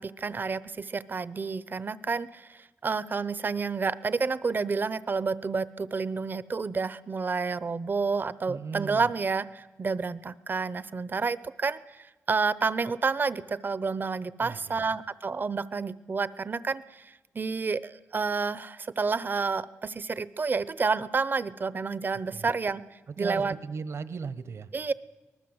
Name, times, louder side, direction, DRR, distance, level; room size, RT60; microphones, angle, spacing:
voice 1, 0.0-22.8 23.2-23.5 24.7-24.9, right 4 dB, 40° right, 17 dB, 0.8 m, -30 dB
voice 2, 8.5-9.1 14.4-14.9 22.3-22.5 23.1-24.7, right 5 dB, 65° right, 14 dB, 1.2 m, -37 dB
24.5 x 19.5 x 7.9 m, 1.1 s
cardioid pair, 85°, 5 cm